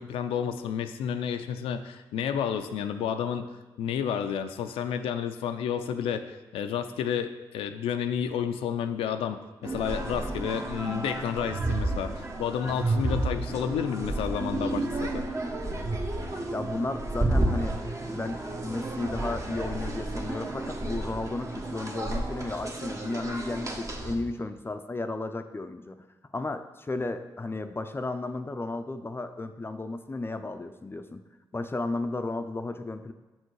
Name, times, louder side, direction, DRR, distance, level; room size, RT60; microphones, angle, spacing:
voice 1, 0.0-3.4 3.8-15.2, left 8 dB, 90° left, 8 dB, 0.4 m, -31 dB
sound 1, 9.6-24.2, right 2 dB, 35° right, 1.1 m, -31 dB
voice 2, 16.5-17.8 18.1-26.0 26.3-31.2 31.5-33.1, left 2 dB, 25° left, 8 dB, 0.4 m, -34 dB
7.6 x 4.5 x 4.7 m, 1.2 s
supercardioid pair, 60°, 9 cm